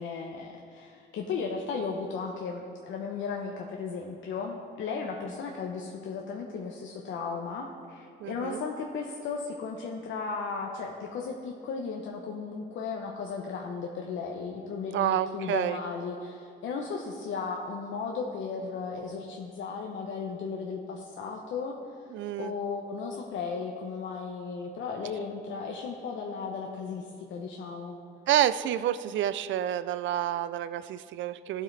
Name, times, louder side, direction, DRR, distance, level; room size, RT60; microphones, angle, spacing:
voice 1, 0.0-21.8 22.4-28.0, left 5 dB, 75° left, 0 dB, 0.9 m, -35 dB
voice 2, 8.2-8.6 14.9-15.8 22.1-22.5 28.3-31.6, right 11 dB, 70° right, 14 dB, 0.4 m, -28 dB
14.5 x 7.5 x 3.3 m, 2.2 s
cardioid pair, 90°, 20 cm